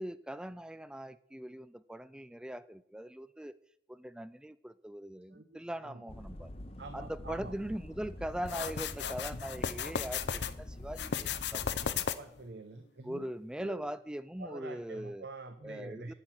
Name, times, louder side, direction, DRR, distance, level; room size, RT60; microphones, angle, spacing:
voice 1, 0.0-3.5 3.9-6.5 6.9-12.1 13.0-15.3 15.6-16.1, right 1 dB, 5° right, 16 dB, 0.3 m, -41 dB
voice 2, 5.3-6.0 6.8-7.6 12.1-13.2 13.6-13.9 14.4-16.1, right 3 dB, 75° right, 9 dB, 0.7 m, -46 dB
sound 1, 6.1-11.9, left 1 dB, 35° left, 0.8 m, -46 dB
sound 2, 8.5-10.5 10.9-12.4, left 7 dB, 75° left, 0.6 m, -35 dB
9.9 x 6.1 x 8.7 m, 0.74 s
head